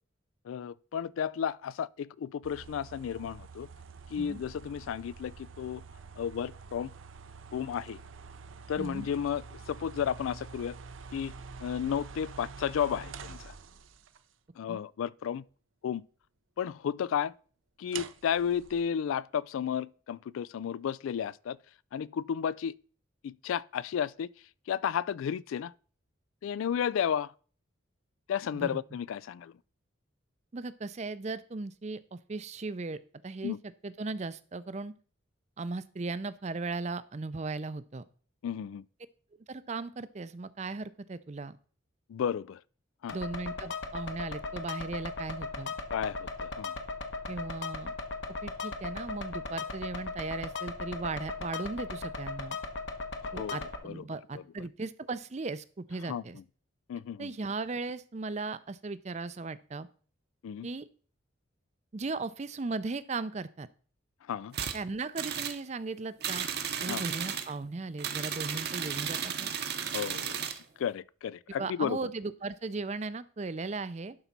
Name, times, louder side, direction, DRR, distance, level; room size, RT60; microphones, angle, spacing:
voice 1, 0.5-3.7 4.1-5.8 6.2-6.9 7.5-8.0 8.7-10.8 11.1-11.3 11.6-13.5 14.6-15.4 15.8-16.0 16.6-17.3 17.8-21.6 21.9-22.7 23.2-24.3 24.7-25.7 26.4-27.3 28.3-29.5 33.4-33.6 38.4-38.8 42.1-42.6 43.0-43.2 45.9-46.8 53.2-53.6 53.8-54.0 54.3-54.4 56.1-56.2 56.9-57.3 60.4-60.7 64.3-64.5 66.9-67.0 69.9-70.5 70.8-72.0, left 8 dB, 80° left, 0.3 m, -33 dB
sound 1, 2.4-14.2 17.9-18.8, right 5 dB, 75° right, 0.6 m, -47 dB
voice 2, 8.8-9.1 14.7-14.8 28.5-28.7 30.5-33.6 33.8-34.9 35.6-38.0 39.5-41.6 43.1-45.7 47.3-47.9 48.4-52.6 53.3-56.4 57.2-59.9 60.6-60.9 61.9-63.7 64.7-66.5 66.8-69.5 71.6-74.2, right 3 dB, 35° right, 0.4 m, -37 dB
sound 2, 43.1-53.8, left 3 dB, 65° left, 1.1 m, -38 dB
sound 3, 64.5-64.8 65.2-65.6 66.2-67.5 68.0-70.6, right 8 dB, 50° right, 0.9 m, -34 dB
11.5 x 4.0 x 5.9 m
head